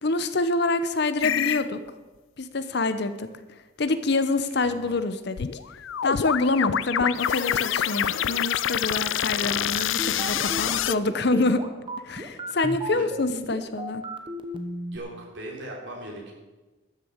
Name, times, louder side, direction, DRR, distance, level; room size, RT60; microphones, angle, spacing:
voice 1, 0.0-1.8 2.4-3.3 3.8-5.5 6.0-11.6 12.0-14.0, left 2 dB, 55° left, 11 dB, 0.8 m, -26 dB
sound 1, 1.2-1.7 5.4-10.9, left 10 dB, 70° left, 0.4 m, -26 dB
voice 2, 4.6-5.0 12.9-13.1 14.9-16.3, right 1 dB, 60° right, -1 dB, 3.7 m, -39 dB
sound 2, 9.8-15.0, right 1 dB, 25° right, 1.1 m, -34 dB
13.0 x 6.8 x 8.7 m, 1.2 s
head